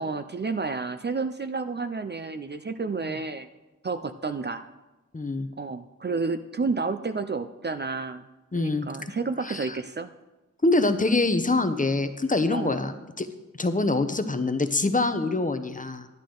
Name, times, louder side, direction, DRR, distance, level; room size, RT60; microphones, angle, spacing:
voice 1, 0.0-3.5 3.8-4.7 5.6-8.3 8.6-10.1 12.5-12.8, right 4 dB, 35° right, 9 dB, 0.5 m, -30 dB
voice 2, 5.1-5.5 8.5-8.9 9.4-9.7 10.6-13.3 13.6-16.1, left 2 dB, 25° left, 9 dB, 0.8 m, -25 dB
11.0 x 10.5 x 3.8 m, 1.1 s
wide cardioid pair, 80°, 31 cm